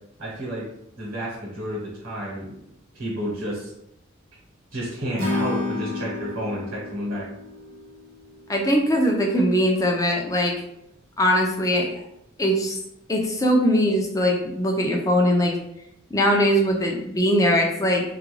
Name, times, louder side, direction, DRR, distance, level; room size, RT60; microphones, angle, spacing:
voice 1, 0.2-0.6 1.0-2.7 2.9-3.7 4.7-7.3, equal, 75° right, -4 dB, 0.9 m, -31 dB
Acoustic guitar / Strum, 5.2-8.4, left 3 dB, 40° right, 0.6 m, -30 dB
voice 2, 8.5-10.5 11.2-12.0 12.4-12.8 13.1-15.5 16.1-18.0, equal, 15° left, 1 dB, 0.3 m, -21 dB
2.3 x 2.2 x 3.1 m, 0.81 s
head